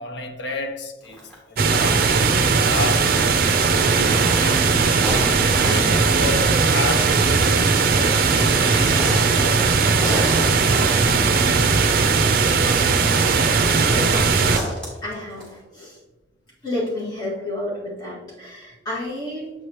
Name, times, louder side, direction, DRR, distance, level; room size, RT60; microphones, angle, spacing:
voice 1, 0.0-2.1 2.6-3.4 4.0-5.0 5.6-9.7 10.6-11.7, left 2 dB, 70° left, 0.7 m, -31 dB
sound 1, 1.0-1.3 3.9-6.0 6.3-6.6 8.8-11.8 14.1-15.5, equal, 5° left, 1.8 m, -32 dB
sound 2, 1.6-14.6, right 4 dB, 50° right, 0.5 m, -18 dB
voice 2, 13.9-14.4 15.0-16.0 16.6-19.5, left 1 dB, 20° left, 2.0 m, -30 dB
7.6 x 4.8 x 3.0 m
head